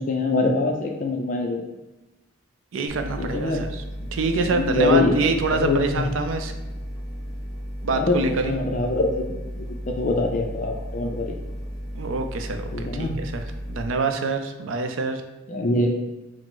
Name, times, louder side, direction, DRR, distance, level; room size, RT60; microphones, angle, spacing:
voice 1, 0.0-1.6 3.2-3.6 4.0-4.1 4.4-5.2 5.5-6.1 7.9-9.2 9.6-9.7 10.0-11.4 12.7-13.2 15.5-16.0, left 2 dB, 40° left, 2 dB, 0.4 m, -24 dB
voice 2, 2.7-3.8 4.1-6.5 7.8-8.6 11.9-13.4 13.7-15.2, right 3 dB, 75° right, 6 dB, 0.4 m, -26 dB
sound 1, 2.9-13.9, equal, ahead, 1.0 m, -34 dB
4.8 x 2.0 x 3.8 m, 1.1 s
head